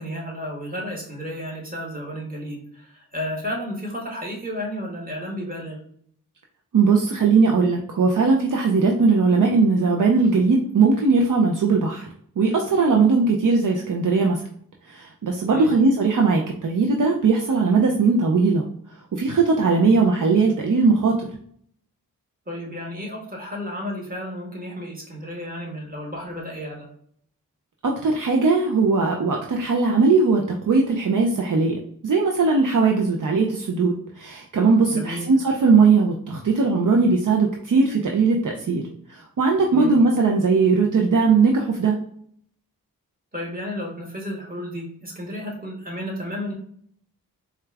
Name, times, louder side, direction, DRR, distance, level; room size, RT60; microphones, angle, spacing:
voice 1, 0.0-5.8 15.5-15.7 22.5-26.9 34.9-35.3 39.7-40.0 43.3-46.5, equal, 25° right, -2 dB, 1.6 m, -32 dB
voice 2, 6.7-12.1 12.4-14.4 14.9-18.6 19.2-21.2 27.8-31.8 32.0-38.8 39.1-42.0, right 4 dB, 60° right, 0 dB, 0.7 m, -19 dB
4.3 x 2.4 x 3.4 m, 0.62 s
cardioid pair, 60°, 36 cm